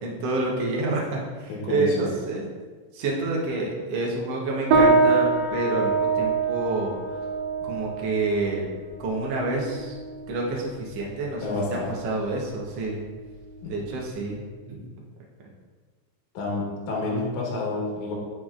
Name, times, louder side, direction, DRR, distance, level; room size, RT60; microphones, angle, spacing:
voice 1, 0.0-2.4 2.9-7.0 7.6-8.6 9.0-9.9 10.3-11.4 12.0-13.0 13.7-14.4 14.7-14.8, right 2 dB, 65° right, -3 dB, 1.6 m, -28 dB
voice 2, 1.5-2.0 11.4-11.9 13.6-13.7 16.3-18.1, left 2 dB, 60° left, -3 dB, 2.4 m, -29 dB
sound 1, 4.7-14.4, right 4 dB, 90° right, 2.9 m, -26 dB
7.9 x 5.9 x 2.4 m, 1.4 s
omnidirectional pair, 4.1 m